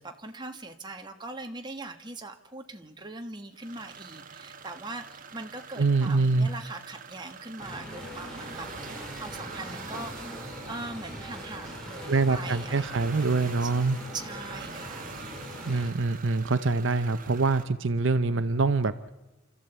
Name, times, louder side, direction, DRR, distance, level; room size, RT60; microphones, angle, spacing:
voice 1, 0.0-10.3 10.6-13.7 14.1-15.1, right 2 dB, 20° right, 4 dB, 1.4 m, -41 dB
sound 1, 3.6-17.6, right 5 dB, 40° right, 1.2 m, -45 dB
voice 2, 5.8-6.5 12.1-14.0 15.7-18.9, right 3 dB, 65° right, 12 dB, 0.7 m, -25 dB
sound 2, 7.6-15.9, equal, 5° left, 4.0 m, -41 dB
27.5 x 13.5 x 8.1 m, 1.0 s
head